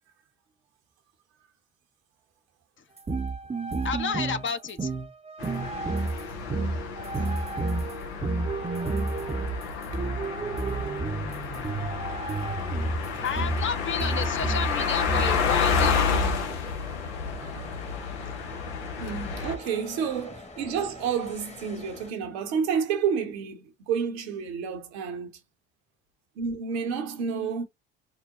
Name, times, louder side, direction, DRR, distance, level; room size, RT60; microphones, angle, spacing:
sound 1, 3.0-16.4, right 3 dB, 20° right, 0.7 m, -31 dB
voice 1, 3.8-4.9 13.2-16.1, left 6 dB, 40° left, 0.8 m, -31 dB
sound 2, 5.4-19.6, left 6 dB, 85° left, 0.9 m, -30 dB
sound 3, 12.8-22.1, left 3 dB, 20° left, 1.2 m, -46 dB
voice 2, 19.0-25.3 26.4-27.6, right 6 dB, 80° right, 1.0 m, -30 dB
4.2 x 2.2 x 3.6 m
hypercardioid pair, 55°, 32 cm